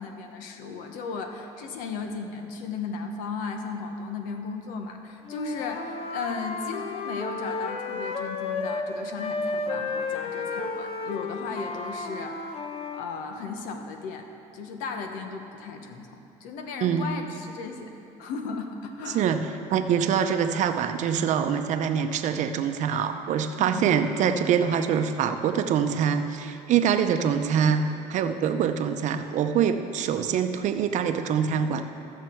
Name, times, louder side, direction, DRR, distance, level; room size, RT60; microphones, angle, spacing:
voice 1, 0.0-12.4 12.9-14.3 14.5-17.9 18.2-19.4 23.6-23.9, left 4 dB, 80° left, 5 dB, 1.1 m, -36 dB
Wind instrument woodwind instrument, 5.2-8.9 9.2-13.0, left 4 dB, 45° left, 0.8 m, -32 dB
voice 2, 19.1-31.8, right 7 dB, 60° right, 8 dB, 0.7 m, -25 dB
15.0 x 6.7 x 4.5 m, 2.8 s
cardioid pair, 105°, 14 cm